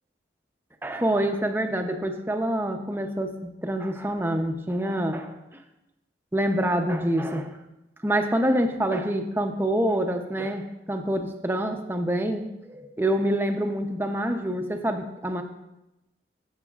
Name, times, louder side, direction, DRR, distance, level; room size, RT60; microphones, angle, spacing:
voice 1, 0.8-5.6 6.3-7.6 8.0-15.4, right 1 dB, 15° right, 5 dB, 0.7 m, -26 dB
15.0 x 6.4 x 2.4 m, 0.91 s
head